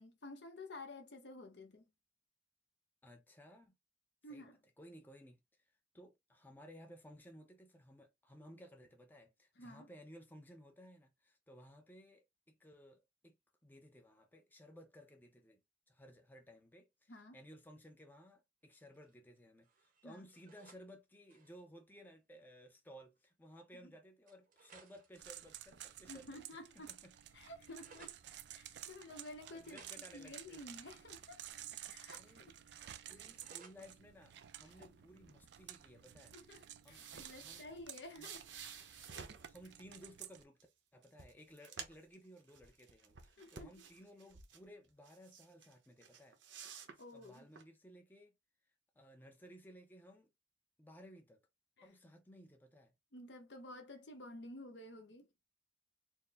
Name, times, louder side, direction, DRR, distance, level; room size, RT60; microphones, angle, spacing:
voice 1, 0.0-1.8 4.2-4.6 9.6-9.9 17.1-17.4 20.0-20.3 23.8-23.9 26.1-27.0 27.3-28.2 28.5-31.4 31.9-32.2 32.7-33.2 34.6-34.9 36.3-38.5 43.4-43.7 47.0-47.5 51.8-51.9 53.1-55.3, left 1 dB, 65° left, 0.9 m, -52 dB
voice 2, 3.0-3.8 4.3-13.4 13.6-26.4 26.8-27.1 28.8-28.9 29.5-30.8 32.1-32.5 33.1-36.4 36.8-37.1 37.4-37.6 38.2-38.3 39.5-40.6 40.9-46.8 47.1-48.3 49.0-50.3 50.8-51.4 51.8-53.0, equal, 10° left, 0.6 m, -58 dB
sound 1, 18.7-19.4 19.6-20.8 21.2-21.6 22.7-22.8 23.2-23.3 24.3-26.5 26.8-28.2 29.3-32.1 32.3-33.8, right 5 dB, 50° right, 0.8 m, -64 dB
sound 2, 25.1-40.4, right 11 dB, 65° right, 0.4 m, -53 dB
sound 3, 36.6-39.5 40.6-40.7 41.0-42.1 42.5-44.6 45.0-45.7 46.0-47.6, right 6 dB, 85° right, 0.9 m, -52 dB
4.5 x 2.1 x 3.5 m
head